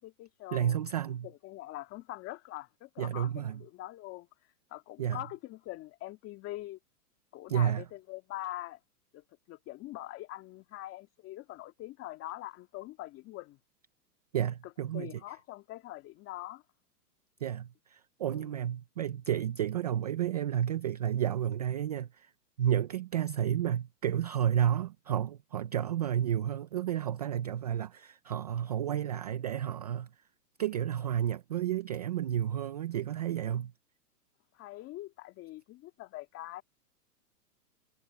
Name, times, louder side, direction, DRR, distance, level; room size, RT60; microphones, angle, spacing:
voice 1, 0.0-4.3 4.7-6.8 7.3-8.8 9.1-13.6 14.9-16.6 18.3-18.6 34.5-36.6, left 16 dB, 30° left, 2.7 m, -43 dB
voice 2, 0.5-1.3 3.0-3.6 5.0-5.2 7.5-7.8 14.3-15.2 17.4-22.3 22.6-30.1 30.6-33.7, right 10 dB, 30° right, 0.3 m, -31 dB
hypercardioid pair, 150°, 47 cm